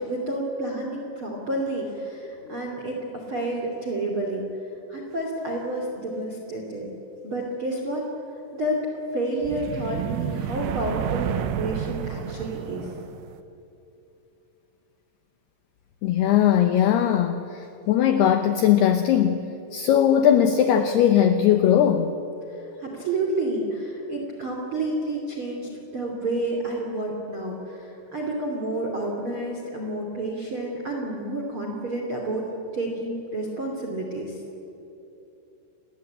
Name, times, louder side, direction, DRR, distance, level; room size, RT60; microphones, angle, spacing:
voice 1, 0.0-4.4 4.9-6.9 7.2-8.1 8.5-8.8 9.1-12.9 22.8-32.5 32.7-34.3, right 1 dB, 30° right, 1 dB, 2.9 m, -30 dB
sound 1, 9.4-13.4, right 10 dB, 75° right, 2.9 m, -30 dB
voice 2, 16.0-17.4 17.9-19.4 19.7-22.1, left 10 dB, 75° left, 8 dB, 2.4 m, -19 dB
28.5 x 20.5 x 8.9 m, 2.8 s
omnidirectional pair, 5.8 m